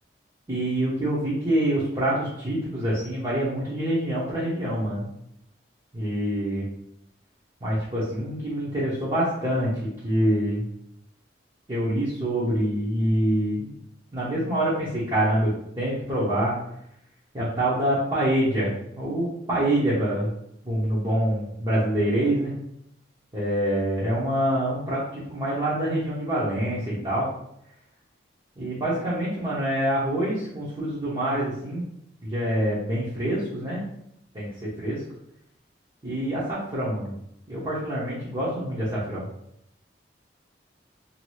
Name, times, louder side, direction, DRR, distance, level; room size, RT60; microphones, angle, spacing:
voice 1, 0.5-5.1 5.9-6.6 7.6-10.7 11.7-13.7 14.1-16.6 17.3-20.3 20.6-22.5 23.3-27.3 28.6-31.9 32.2-33.8 34.3-35.0 36.0-37.1 37.5-39.3, right 1 dB, 25° right, -9 dB, 0.8 m, -26 dB
2.7 x 2.5 x 3.0 m, 0.76 s
head